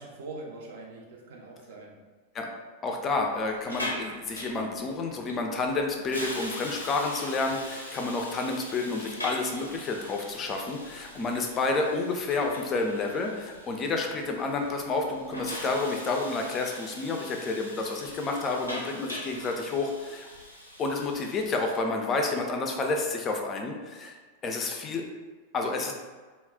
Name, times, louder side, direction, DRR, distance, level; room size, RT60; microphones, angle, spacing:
voice 1, 0.0-1.9 5.1-5.3 14.0-14.2 24.8-25.0, right 2 dB, 55° right, -1 dB, 0.6 m, -43 dB
voice 2, 2.8-20.3 20.8-24.2 24.4-25.1 25.5-25.9, left 3 dB, 25° left, 2 dB, 0.4 m, -30 dB
Hiss, 3.2-21.8, left 1 dB, 85° left, 0.5 m, -41 dB
2.3 x 2.0 x 3.6 m, 1.4 s
figure-of-eight pair, 90°, 0 cm